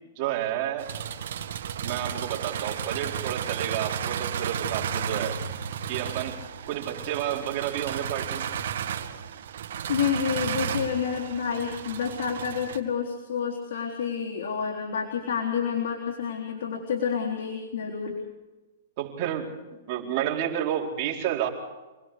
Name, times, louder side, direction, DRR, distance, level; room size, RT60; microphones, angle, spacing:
voice 1, 0.2-0.9 1.8-5.4 5.9-6.4 6.7-8.6 19.0-19.6 19.9-21.5, right 11 dB, 40° right, 0 dB, 4.6 m, -30 dB
sound 1, 0.8-12.8, right 8 dB, 70° right, 2.1 m, -33 dB
voice 2, 9.9-18.2, left 7 dB, 70° left, -1 dB, 3.8 m, -29 dB
28.0 x 20.0 x 5.1 m, 1.1 s
hypercardioid pair, 155°, 0 cm